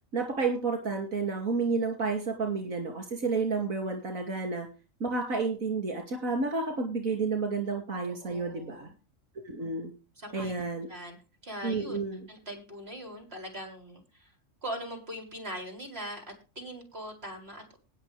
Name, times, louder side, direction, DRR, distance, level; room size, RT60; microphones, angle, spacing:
voice 1, 0.1-4.7 5.0-8.9 9.4-9.9 10.3-10.9 11.6-12.3, right 4 dB, 85° right, 3 dB, 3.0 m, -30 dB
voice 2, 8.1-8.9 9.6-9.7 10.2-10.5 10.9-11.2 11.4-12.0 12.3-14.3 14.6-17.8, equal, 50° right, 3 dB, 4.6 m, -41 dB
20.0 x 6.7 x 3.4 m, 0.33 s
omnidirectional pair, 1.4 m